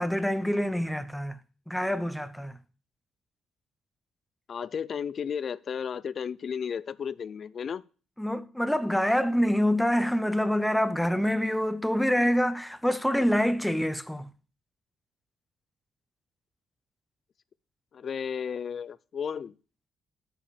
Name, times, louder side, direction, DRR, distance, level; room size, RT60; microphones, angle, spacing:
voice 1, 0.0-1.4 1.7-2.6 8.2-14.3, equal, 5° left, 0.8 m, -26 dB
voice 2, 4.5-7.8 17.9-19.5, left 7 dB, 50° left, 0.5 m, -33 dB
9.0 x 5.0 x 7.0 m
cardioid pair, 90°, 0 cm